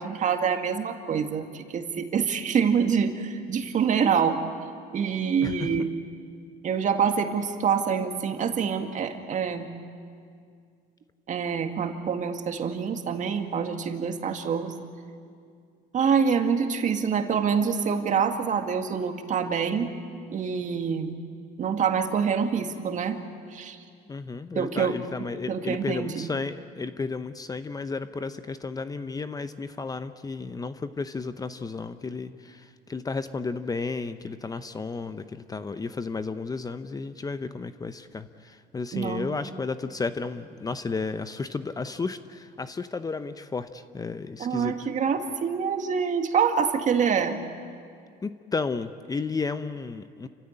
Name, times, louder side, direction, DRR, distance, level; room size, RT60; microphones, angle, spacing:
voice 1, 0.0-4.4 4.9-5.9 6.6-9.7 11.3-14.7 15.9-19.9 20.3-21.2 21.6-23.2 23.5-23.8 24.6-26.3 38.9-39.3 44.4-47.4, right 6 dB, 45° right, 6 dB, 1.9 m, -26 dB
voice 2, 24.1-44.7 48.2-50.3, left 4 dB, 20° left, 11 dB, 0.8 m, -33 dB
28.0 x 15.5 x 8.9 m, 2.2 s
supercardioid pair, 95°, 17 cm